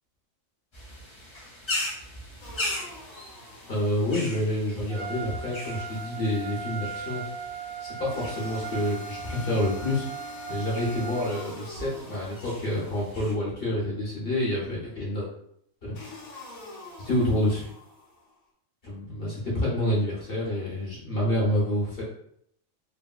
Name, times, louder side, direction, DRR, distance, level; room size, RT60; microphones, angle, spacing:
sound 1, 0.7-13.3, left 1 dB, 30° left, 0.5 m, -40 dB
sound 2, 2.4-4.4 8.1-13.4 16.0-18.4, left 3 dB, 80° left, 1.3 m, -46 dB
voice 1, 3.7-7.3 7.8-10.1 10.5-15.3 15.8-16.0 17.0-17.7 18.8-22.0, left 1 dB, 45° left, -5 dB, 1.1 m, -28 dB
Trumpet, 4.9-11.4, right 6 dB, 80° right, 1.0 m, -38 dB
3.2 x 2.7 x 2.3 m, 0.70 s
omnidirectional pair, 1.4 m